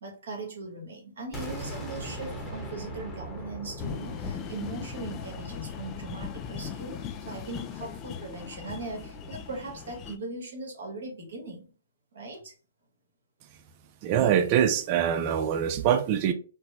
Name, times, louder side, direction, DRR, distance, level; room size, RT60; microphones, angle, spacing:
voice 1, 0.0-11.7 12.1-12.5, right 3 dB, 70° right, 1.5 m, -39 dB
sound 1, 1.3-7.1, right 1 dB, 10° left, 1.0 m, -40 dB
sound 2, 3.8-10.2, left 7 dB, 25° left, 0.4 m, -39 dB
voice 2, 14.0-16.3, right 9 dB, 40° right, 0.4 m, -24 dB
4.3 x 2.1 x 2.6 m
hypercardioid pair, 135°, 0 cm